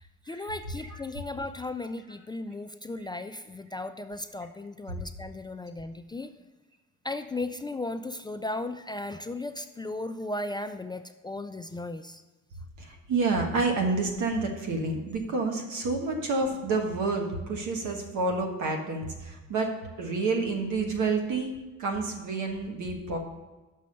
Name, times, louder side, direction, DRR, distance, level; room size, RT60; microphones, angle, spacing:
voice 1, 0.0-6.3 7.0-12.2, left 2 dB, 15° left, 9 dB, 0.3 m, -36 dB
voice 2, 12.8-19.7 20.0-21.5 21.8-23.2, right 3 dB, 75° right, 3 dB, 1.4 m, -29 dB
6.2 x 5.6 x 6.5 m, 1.2 s
cardioid pair, 90°, 30 cm